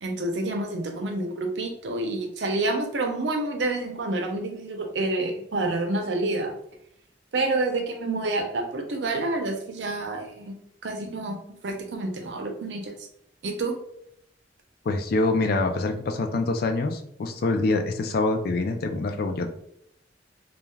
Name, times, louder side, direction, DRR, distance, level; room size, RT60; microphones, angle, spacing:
voice 1, 0.0-6.5 7.3-13.0 13.4-13.8, right 2 dB, 80° right, 3 dB, 0.6 m, -28 dB
voice 2, 14.9-19.5, left 2 dB, 55° left, 5 dB, 0.4 m, -25 dB
2.3 x 2.2 x 3.2 m, 0.73 s
head